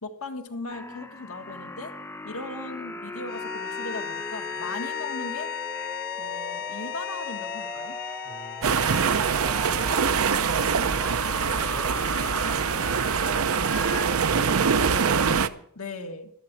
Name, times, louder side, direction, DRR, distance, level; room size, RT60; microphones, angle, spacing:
voice 1, 0.0-1.9 2.2-5.5 6.2-8.0 14.7-16.3, left 2 dB, 75° left, 4 dB, 1.8 m, -38 dB
sound 1, 0.7-14.1, left 2 dB, 10° left, 0.8 m, -38 dB
sound 2, 3.2-9.4, left 9 dB, 45° left, 0.6 m, -35 dB
voice 2, 8.2-10.1 10.5-13.3, right 2 dB, 35° right, 1 dB, 2.8 m, -44 dB
sound 3, 8.6-15.5, right 6 dB, 75° right, 0.6 m, -24 dB
13.0 x 11.0 x 6.0 m, 0.67 s
head